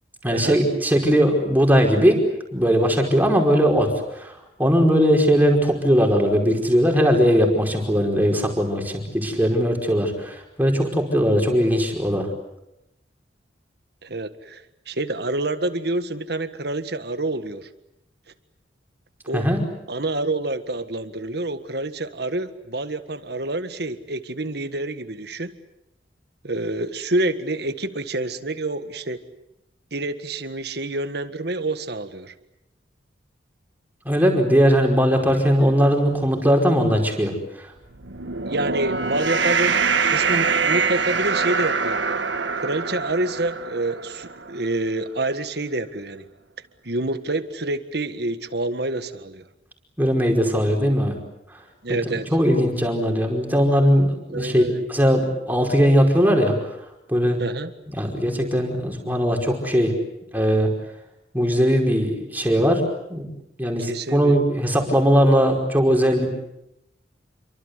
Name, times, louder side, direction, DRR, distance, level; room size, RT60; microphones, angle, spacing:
voice 1, 0.2-2.2 2.5-4.3 4.6-12.3 19.3-19.6 34.0-37.7 50.0-51.1 51.9-52.0 52.3-56.6 57.1-57.4 58.0-59.9 60.3-60.7 61.3-62.8 63.1-63.3 63.6-66.3, equal, 10° right, 2 dB, 5.1 m, -19 dB
voice 2, 14.0-17.7 19.3-19.5 19.9-25.6 26.4-29.2 29.9-32.3 35.6-35.8 38.5-39.8 40.1-42.0 42.6-46.3 46.8-49.4 51.8-52.3 54.3-54.8 57.4-57.7 63.8-64.4, right 2 dB, 60° right, 10 dB, 1.7 m, -27 dB
sound 1, 37.9-44.5, right 5 dB, 90° right, 1.7 m, -24 dB
28.0 x 24.0 x 8.2 m, 0.85 s
head